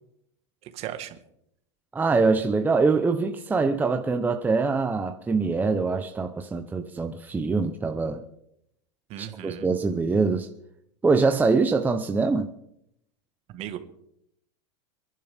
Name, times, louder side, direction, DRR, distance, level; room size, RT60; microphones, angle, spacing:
voice 1, 0.6-1.2 9.1-9.8 13.5-13.8, right 11 dB, 40° right, 9 dB, 1.6 m, -37 dB
voice 2, 1.9-8.2 9.2-10.5 11.0-12.5, right 4 dB, 10° right, 6 dB, 0.8 m, -24 dB
29.0 x 11.0 x 3.6 m, 0.75 s
supercardioid pair, 135°, 16 cm